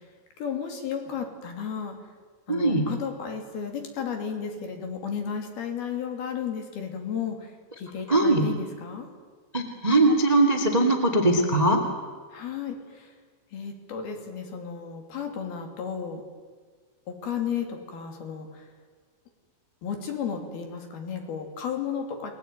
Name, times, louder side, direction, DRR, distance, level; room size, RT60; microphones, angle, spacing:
voice 1, 0.4-2.0 2.5-7.5 7.8-9.1 12.3-13.1 13.5-16.2 17.1-18.7 19.8-22.3, left 7 dB, 55° left, 4 dB, 4.3 m, -33 dB
voice 2, 2.5-2.9 8.1-8.4 9.5-11.8, right 2 dB, 25° right, 5 dB, 0.7 m, -21 dB
30.0 x 20.5 x 9.2 m, 1.5 s
omnidirectional pair, 5.8 m